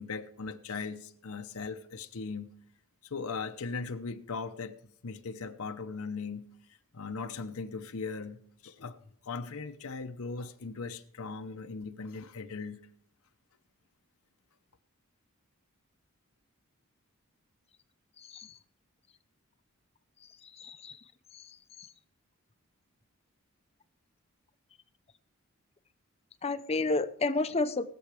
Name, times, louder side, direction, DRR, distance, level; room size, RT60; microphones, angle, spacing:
voice 1, 0.0-2.5 3.0-4.8 5.0-9.0 9.2-12.8, left 4 dB, 75° left, 7 dB, 0.8 m, -39 dB
voice 2, 20.6-21.0 21.8-21.9 26.4-27.9, left 3 dB, 30° left, 11 dB, 0.6 m, -30 dB
19.0 x 7.2 x 5.0 m, 0.62 s
head